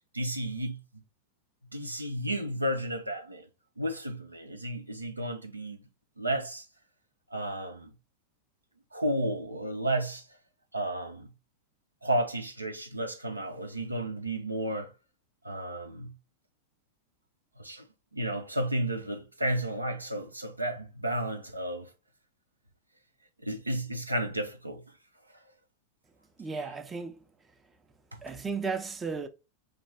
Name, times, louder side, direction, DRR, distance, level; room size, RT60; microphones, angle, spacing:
voice 1, 0.1-0.8 1.7-3.5 3.8-5.8 6.2-6.6 7.3-7.9 8.9-10.3 10.7-11.3 12.0-14.9 15.4-16.2 17.6-17.9 18.1-21.9 23.4-24.8 26.6-26.7, right 1 dB, 85° right, 0.5 m, -32 dB
voice 2, 26.4-27.2 28.2-29.3, right 4 dB, 15° right, 0.5 m, -34 dB
3.3 x 2.2 x 3.3 m
figure-of-eight pair, 90°, 0 cm